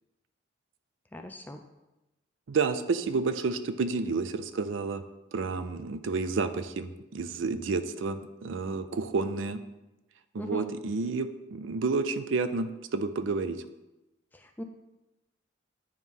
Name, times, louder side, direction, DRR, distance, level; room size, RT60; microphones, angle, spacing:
voice 1, 1.1-1.6 3.2-3.3 10.4-10.7 14.3-14.6, left 1 dB, 10° left, 5 dB, 0.4 m, -39 dB
voice 2, 2.5-5.0 5.3-9.6 10.3-13.6, right 4 dB, 85° right, 11 dB, 0.5 m, -30 dB
9.2 x 3.1 x 5.3 m, 1.0 s
head